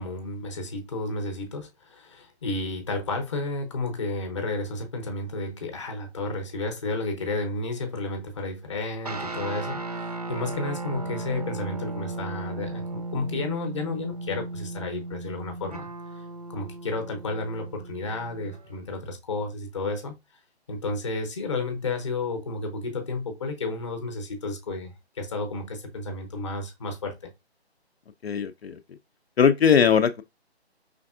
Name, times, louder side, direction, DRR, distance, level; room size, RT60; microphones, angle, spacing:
voice 1, 0.0-15.9 16.5-20.1 20.7-27.3, left 3 dB, 30° left, 0.7 m, -32 dB
sound 1, 9.1-18.8, right 3 dB, 35° right, 0.5 m, -36 dB
voice 2, 28.2-28.8 29.4-30.2, left 7 dB, 65° left, 0.5 m, -20 dB
5.1 x 3.5 x 2.4 m
hypercardioid pair, 165°, 33 cm